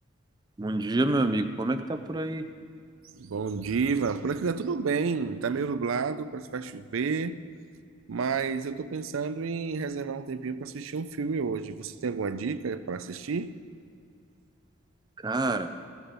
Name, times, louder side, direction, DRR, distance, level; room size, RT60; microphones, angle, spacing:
voice 1, 0.6-2.5 15.2-15.7, right 2 dB, 20° right, 0.4 m, -27 dB
voice 2, 3.1-7.4 8.1-13.5, right 5 dB, 80° right, 0.5 m, -30 dB
15.0 x 7.3 x 5.3 m
head